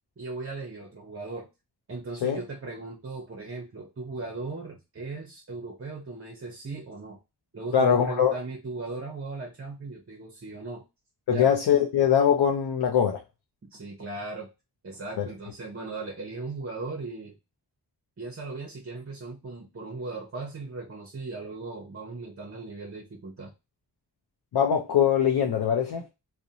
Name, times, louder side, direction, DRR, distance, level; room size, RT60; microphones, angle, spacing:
voice 1, 0.2-1.5 1.9-7.2 7.5-10.8 11.3-11.5 13.6-14.5 14.8-17.4 18.2-23.5, right 3 dB, 35° right, 0.6 m, -38 dB
voice 2, 7.7-8.3 11.3-13.2 15.2-15.3 24.5-26.0, left 8 dB, 75° left, 0.5 m, -22 dB
2.5 x 2.1 x 2.7 m
wide cardioid pair, 85°, 40 cm